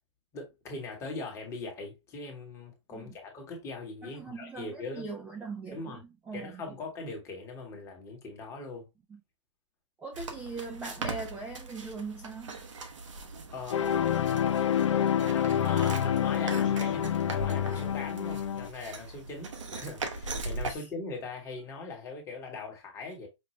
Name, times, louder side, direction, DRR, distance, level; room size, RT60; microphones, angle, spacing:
voice 1, 0.3-5.1 5.7-6.0 6.3-8.9 13.5-14.3 15.3-23.3, left 3 dB, 20° left, 1.2 m, -41 dB
voice 2, 4.0-6.6 9.1-9.2 10.0-12.6 20.7-20.9, right 4 dB, 10° right, 0.5 m, -41 dB
sound 1, 10.1-20.7, right 3 dB, 80° right, 1.1 m, -40 dB
sound 2, 13.7-18.7, left 9 dB, 70° left, 0.5 m, -27 dB
5.3 x 2.1 x 3.0 m
hypercardioid pair, 145°, 16 cm